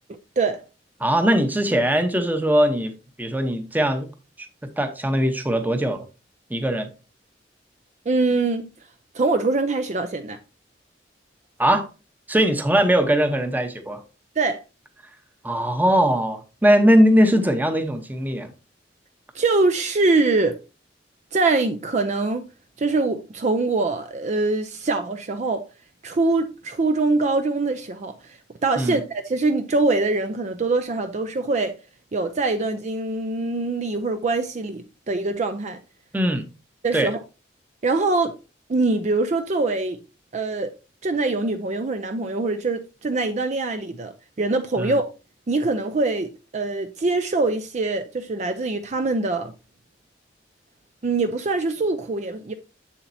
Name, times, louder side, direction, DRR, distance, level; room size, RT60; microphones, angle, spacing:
voice 1, 1.0-2.9 3.2-4.1 4.4-4.5 4.8-6.1 6.5-6.9 11.6-11.9 12.3-14.0 15.4-18.5 28.8-29.0 36.1-36.4 36.9-37.1 44.8-44.9, equal, 10° right, 0.8 m, -20 dB
voice 2, 8.1-8.7 9.1-10.4 14.4-14.6 19.3-20.6 21.3-22.4 22.8-25.6 26.0-31.7 32.1-35.8 36.8-37.2 37.8-38.4 38.7-40.0 40.3-40.7 41.0-45.0 45.5-49.5 51.0-52.5, right 3 dB, 40° right, 0.4 m, -23 dB
7.2 x 7.1 x 2.6 m
head